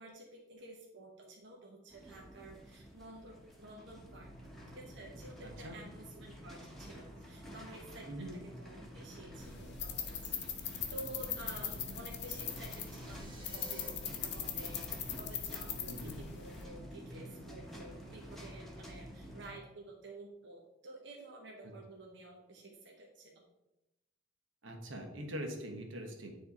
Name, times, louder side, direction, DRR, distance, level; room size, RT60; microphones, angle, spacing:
voice 1, 0.0-4.3 4.7-23.5, right 2 dB, 65° right, -1 dB, 1.0 m, -51 dB
sound 1, 1.9-19.5, equal, ahead, 1.1 m, -50 dB
voice 2, 5.4-5.8 8.1-8.4 15.9-16.2 24.6-26.3, equal, 90° right, 3 dB, 1.2 m, -43 dB
sound 2, 9.4-16.6, left 8 dB, 60° left, 0.9 m, -41 dB
sound 3, 11.3-13.9, right 1 dB, 25° right, 1.7 m, -56 dB
9.3 x 3.4 x 4.2 m, 0.97 s
head